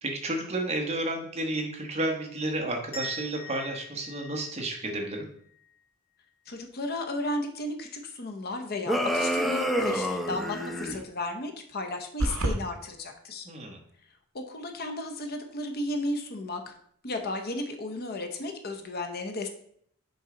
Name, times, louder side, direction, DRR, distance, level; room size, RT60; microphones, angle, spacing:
voice 1, 0.0-5.3 13.4-13.8, right 2 dB, 30° right, 2 dB, 1.1 m, -31 dB
sound 1, 2.9-5.7, left 1 dB, 75° left, 2.2 m, -42 dB
voice 2, 6.5-13.5 14.3-16.7 17.0-19.5, left 2 dB, 45° left, 5 dB, 0.8 m, -34 dB
sound 2, 8.9-11.0, equal, ahead, 0.4 m, -28 dB
sound 3, 12.2-12.6, right 1 dB, 70° right, 0.9 m, -26 dB
6.5 x 4.7 x 3.8 m, 0.64 s
head